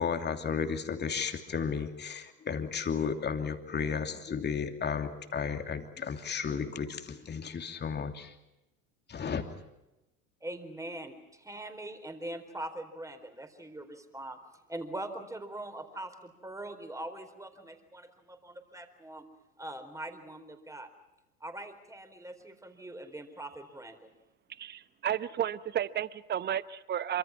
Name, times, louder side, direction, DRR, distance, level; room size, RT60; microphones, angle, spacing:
voice 1, 0.0-8.3 9.1-9.4, left 6 dB, 20° left, 6 dB, 2.9 m, -33 dB
voice 2, 10.4-14.4 14.7-19.3 19.6-20.9 21.4-24.1, right 1 dB, 5° right, 8 dB, 4.2 m, -42 dB
voice 3, 24.6-27.2, right 10 dB, 20° right, 16 dB, 1.0 m, -32 dB
27.0 x 25.5 x 5.9 m, 0.96 s
figure-of-eight pair, 85°, 46 cm